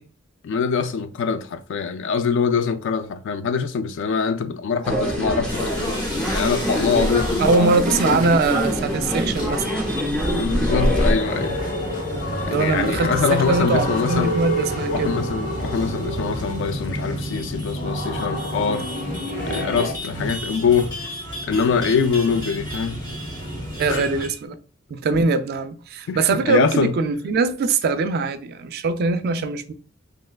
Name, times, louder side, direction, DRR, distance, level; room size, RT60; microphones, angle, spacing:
voice 1, 0.4-7.8 8.3-8.4 10.3-11.6 12.5-14.4 14.9-18.9 19.5-21.0 21.4-23.0 23.9-24.0 26.1-26.9, left 5 dB, 60° left, 0.3 m, -24 dB
sound 1, 4.8-11.1, equal, 5° left, 0.7 m, -24 dB
sound 2, 5.5-24.4, equal, 20° left, 1.0 m, -31 dB
voice 2, 7.4-9.6 12.5-15.1 23.8-24.5 24.9-29.7, right 4 dB, 50° right, 0.3 m, -22 dB
sound 3, 10.7-19.9, equal, 45° left, 1.0 m, -29 dB
3.3 x 2.9 x 2.2 m
head